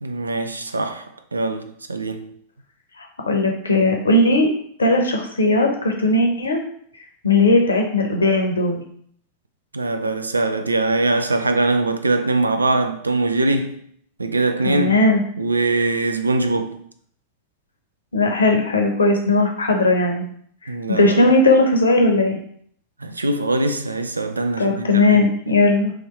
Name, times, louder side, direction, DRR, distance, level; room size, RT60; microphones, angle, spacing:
voice 1, 0.0-2.3 9.7-13.8 14.2-15.0 15.4-16.8 20.7-21.3 23.0-25.2, right 2 dB, 80° right, 0.3 m, -22 dB
voice 2, 3.0-4.5 4.8-6.6 7.2-8.8 14.6-15.2 18.1-20.3 20.6-22.4 24.6-25.9, left 2 dB, 75° left, 0.8 m, -18 dB
3.1 x 3.1 x 4.4 m
figure-of-eight pair, 90°, 0 cm